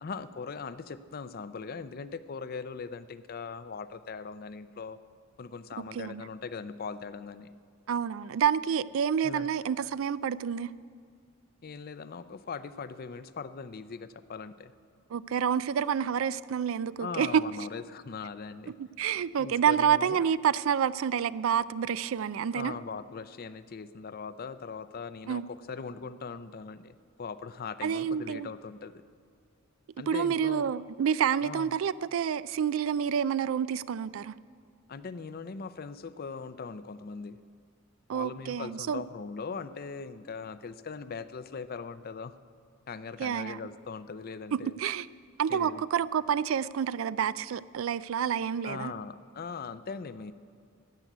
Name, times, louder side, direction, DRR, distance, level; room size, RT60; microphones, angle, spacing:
voice 1, 0.0-5.0 5.4-7.5 9.2-9.5 11.6-14.7 17.0-18.7 19.4-20.2 22.5-29.0 30.0-30.7 31.4-31.7 34.9-37.4 38.1-42.3 42.9-44.8 45.5-45.8 48.6-50.3, left 5 dB, 50° left, 13 dB, 0.5 m, -40 dB
voice 2, 7.9-10.7 15.1-17.5 19.0-22.7 25.3-25.4 27.8-28.5 30.1-34.3 38.1-39.0 43.2-43.6 44.5-45.1 45.4-48.9, right 8 dB, 85° right, 18 dB, 0.4 m, -28 dB
13.0 x 8.1 x 9.2 m, 2.2 s
head